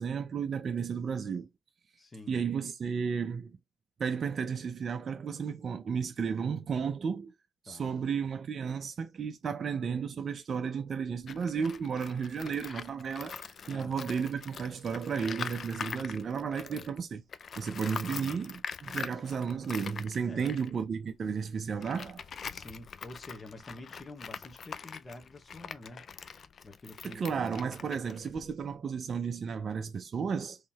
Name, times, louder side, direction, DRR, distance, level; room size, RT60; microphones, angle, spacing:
voice 1, 0.0-1.5 2.3-3.6 4.0-7.3 7.6-17.2 17.6-22.3 27.0-30.6, right 6 dB, 45° right, 0.5 m, -33 dB
voice 2, 2.0-2.4 7.7-8.0 13.7-14.0 16.7-16.9 17.8-18.4 18.8-19.2 20.2-20.6 22.5-26.0 26.6-28.0, left 2 dB, 25° left, 1.1 m, -48 dB
Tools, 11.2-17.0 17.3-28.8, left 6 dB, 50° left, 0.4 m, -43 dB
3.7 x 3.1 x 2.8 m
cardioid pair, 90°, 0 cm